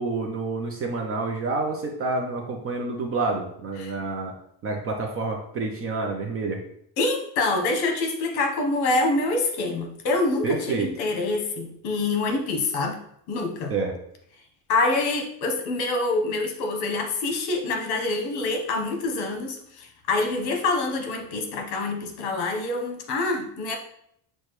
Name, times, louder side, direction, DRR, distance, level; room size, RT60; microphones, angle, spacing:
voice 1, 0.0-4.3 4.6-6.6 10.4-10.9 13.7-13.9, right 3 dB, 35° right, 2 dB, 0.4 m, -28 dB
voice 2, 7.0-13.0 13.3-13.7 14.7-23.8, left 2 dB, 60° left, 3 dB, 1.0 m, -26 dB
6.5 x 2.2 x 3.0 m, 0.70 s
cardioid pair, 175°, 44 cm